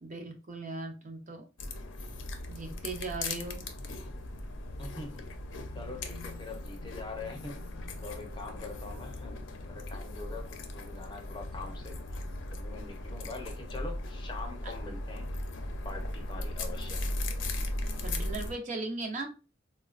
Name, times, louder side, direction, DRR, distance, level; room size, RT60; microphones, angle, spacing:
voice 1, 0.0-1.5 2.5-3.6 14.6-14.7 18.0-19.3, right 3 dB, 40° right, 4 dB, 0.5 m, -38 dB
sound 1, 1.6-18.5, left 1 dB, 75° left, 0.5 m, -38 dB
voice 2, 4.8-5.3 5.7-7.6 8.0-9.4 9.7-12.0 12.5-15.3 15.8-17.7, left 3 dB, 25° left, 2 dB, 0.6 m, -44 dB
4.0 x 2.1 x 2.4 m, 0.31 s
head